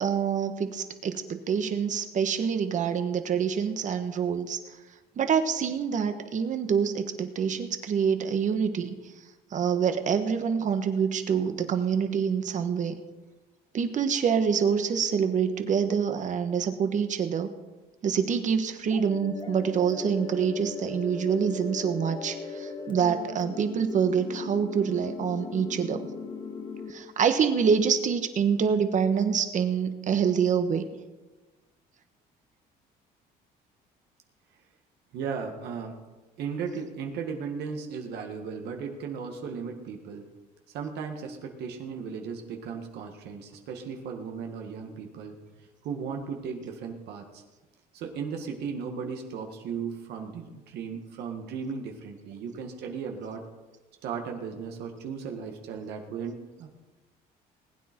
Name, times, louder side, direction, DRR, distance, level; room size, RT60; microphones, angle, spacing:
voice 1, 0.0-4.6 5.2-8.9 9.5-12.9 13.7-17.5 18.0-26.1 26.9-30.8, right 7 dB, 50° right, 8 dB, 1.4 m, -26 dB
sound 1, 18.9-26.9, left 4 dB, 30° left, 1.7 m, -38 dB
voice 2, 35.1-36.0 36.4-40.3 40.7-45.4 45.8-47.4 47.9-53.4 54.0-56.7, right 6 dB, 75° right, 3 dB, 1.9 m, -36 dB
20.0 x 9.3 x 4.5 m, 1.2 s
cardioid pair, 110°, 17 cm